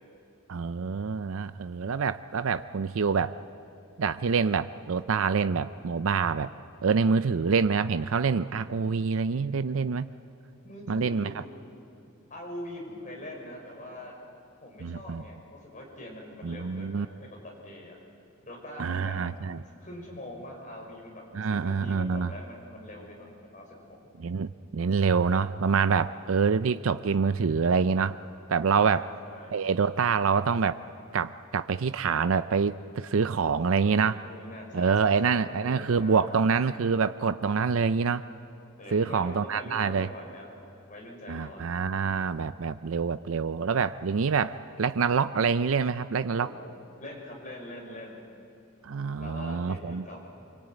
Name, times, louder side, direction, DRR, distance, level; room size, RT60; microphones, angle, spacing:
voice 1, 0.5-3.4 4.0-6.5 6.8-10.1 10.9-11.3 14.8-15.2 16.4-17.1 18.8-19.6 21.3-22.3 24.2-28.2 28.5-29.1 29.5-30.8 31.1-34.2 34.7-38.2 38.9-40.1 41.3-46.5 48.8-50.1, right 5 dB, 80° right, 12 dB, 0.5 m, -26 dB
voice 2, 10.6-11.3 12.3-14.1 14.6-18.0 18.4-19.2 19.8-24.1 28.8-29.5 34.2-36.5 38.8-40.6 40.9-41.7 46.4-46.7 47.0-48.1 49.2-50.3, left 1 dB, 40° left, -1 dB, 6.0 m, -43 dB
24.5 x 23.5 x 9.1 m, 2.6 s
head